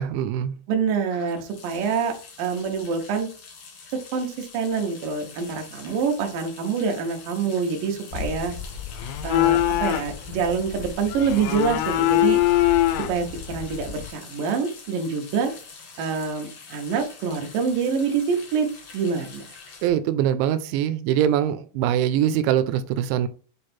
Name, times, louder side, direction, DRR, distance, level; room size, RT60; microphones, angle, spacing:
voice 1, 0.0-0.5 19.8-23.3, right 10 dB, 85° right, 11 dB, 2.9 m, -23 dB
voice 2, 0.7-3.3 4.1-8.5 9.2-12.4 13.1-15.5 16.0-19.5, right 5 dB, 70° right, 3 dB, 2.2 m, -26 dB
sound 1, 1.1-19.9, left 5 dB, 70° left, 1.5 m, -45 dB
sound 2, 8.1-14.1, left 14 dB, 85° left, 2.3 m, -24 dB
7.8 x 3.3 x 4.3 m, 0.40 s
omnidirectional pair, 5.1 m